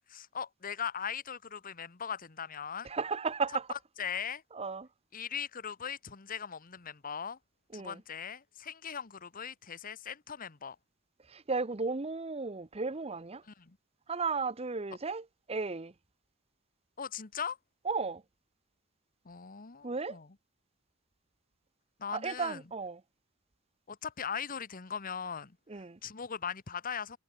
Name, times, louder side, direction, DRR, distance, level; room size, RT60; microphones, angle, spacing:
voice 1, 0.1-2.9 4.0-4.4 5.1-7.4 7.7-10.8 13.5-13.8 17.0-17.6 19.2-20.3 22.0-22.6 23.9-27.2, left 7 dB, 40° left, 1.1 m, -39 dB
voice 2, 2.8-3.7 4.5-4.9 7.7-8.0 11.3-13.4 14.1-15.9 17.8-18.2 19.8-20.2 22.1-23.0 25.7-26.0, right 4 dB, 30° right, 0.8 m, -34 dB
head